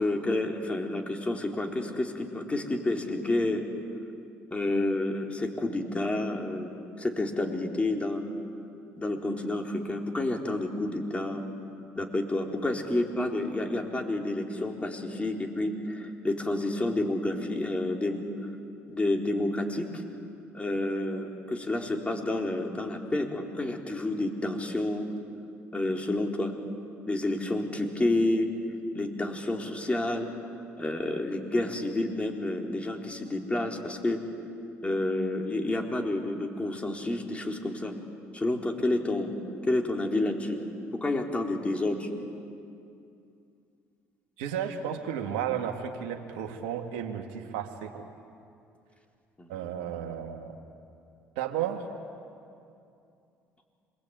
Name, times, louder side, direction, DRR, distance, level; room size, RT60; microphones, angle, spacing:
voice 1, 0.0-3.6 4.5-8.3 9.0-11.4 11.9-18.2 18.9-20.0 20.5-25.1 25.7-26.5 27.1-28.5 28.9-30.3 30.8-34.2 34.8-37.9 38.3-39.3 39.7-40.6 40.9-42.1 49.4-49.7, left 2 dB, 20° left, 2 dB, 4.0 m, -29 dB
voice 2, 44.4-48.1 49.5-50.6 51.4-51.9, right 9 dB, 85° right, 3 dB, 2.0 m, -33 dB
27.0 x 22.5 x 9.0 m, 2.5 s
supercardioid pair, 70°, 6 cm